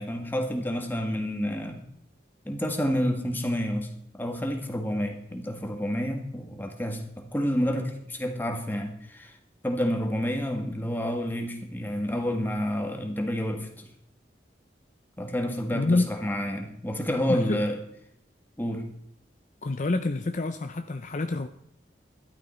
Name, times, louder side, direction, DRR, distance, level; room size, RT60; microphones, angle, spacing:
voice 1, 0.0-1.8 2.4-9.3 9.6-13.9 15.2-17.8 18.6-18.8, equal, 10° left, 3 dB, 1.8 m, -29 dB
voice 2, 15.7-16.1 17.3-17.6 19.6-21.5, left 2 dB, 45° left, 8 dB, 0.6 m, -27 dB
13.0 x 12.0 x 4.4 m, 0.72 s
head